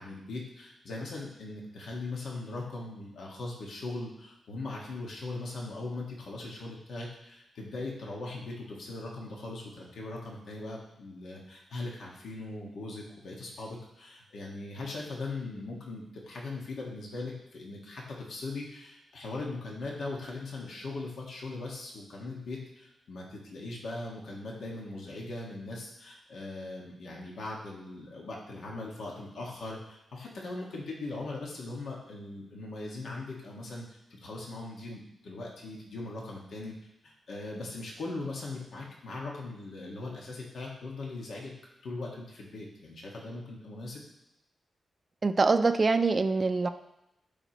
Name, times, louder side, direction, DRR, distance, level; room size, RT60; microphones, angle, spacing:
voice 1, 0.0-36.7 37.0-41.5 41.8-44.0, left 2 dB, 75° left, -2 dB, 1.6 m, -40 dB
voice 2, 45.2-46.7, right 3 dB, 35° right, 8 dB, 0.4 m, -24 dB
12.5 x 5.0 x 3.0 m, 0.84 s
cardioid pair, 100°, 0 cm